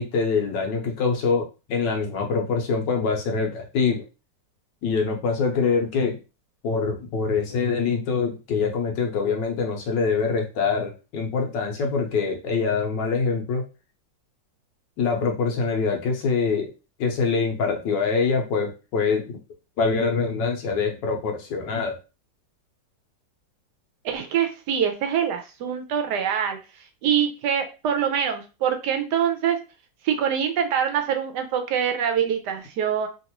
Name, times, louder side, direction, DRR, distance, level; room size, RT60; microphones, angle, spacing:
voice 1, 0.0-1.4 1.7-4.0 4.8-6.2 6.6-13.6 15.0-16.7 17.0-19.4 19.8-22.0, left 5 dB, 80° left, 2 dB, 1.5 m, -24 dB
voice 2, 24.0-26.6 27.0-29.6 30.0-33.1, right 8 dB, 75° right, 5 dB, 1.1 m, -24 dB
3.4 x 2.5 x 2.9 m, 0.30 s
omnidirectional pair, 2.0 m